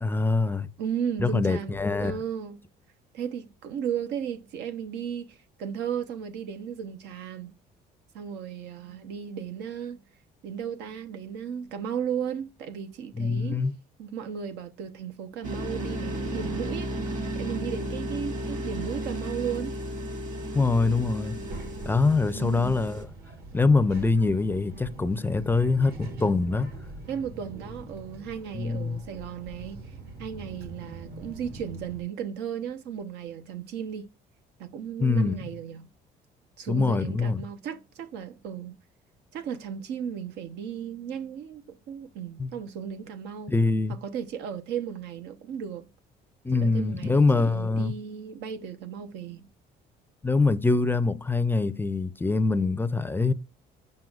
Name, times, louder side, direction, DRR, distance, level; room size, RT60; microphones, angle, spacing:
voice 1, 0.0-0.7 1.2-2.2 13.2-13.7 20.5-21.4 21.9-23.1 23.5-25.9 26.2-26.7 28.5-29.0 35.0-35.4 36.7-37.4 42.4-42.5 43.5-44.0 46.4-47.9 50.2-53.3, left 3 dB, 10° left, 0.4 m, -24 dB
voice 2, 0.8-2.7 3.1-7.5 8.1-10.0 10.4-13.6 14.0-16.9 17.3-19.8 22.3-22.8 27.1-29.8 30.2-34.1 34.6-35.9 36.6-38.7 39.3-43.5 43.9-45.9 46.6-49.5, right 8 dB, 85° right, 0.8 m, -35 dB
sound 1, 15.4-23.0, right 1 dB, 50° right, 1.9 m, -34 dB
Child speech kid speaking, 21.3-32.0, right 2 dB, 70° right, 2.1 m, -42 dB
7.5 x 5.4 x 2.4 m
cardioid pair, 110°, 17 cm